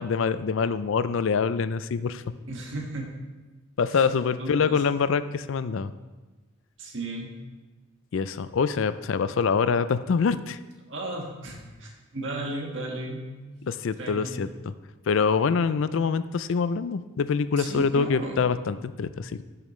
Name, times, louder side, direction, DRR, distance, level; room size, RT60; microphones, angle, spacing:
voice 1, 0.0-2.2 3.8-5.9 8.1-10.6 13.7-14.5 15.1-19.4, left 5 dB, 70° left, 13 dB, 0.4 m, -25 dB
voice 2, 2.4-3.1 3.9-4.0 4.4-4.8 6.8-7.3 10.9-13.4 14.0-14.4 17.6-18.4, right 2 dB, 65° right, 0 dB, 1.7 m, -35 dB
13.5 x 6.9 x 3.2 m, 1.2 s
head